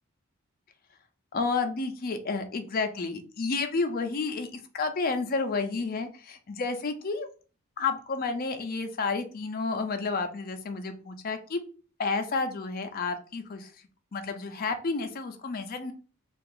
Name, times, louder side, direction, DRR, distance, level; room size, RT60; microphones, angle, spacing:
voice 1, 1.3-7.3 7.8-11.6 12.0-13.7 14.1-15.9, left 4 dB, 45° left, 7 dB, 0.5 m, -31 dB
2.8 x 2.4 x 3.7 m, 0.38 s
head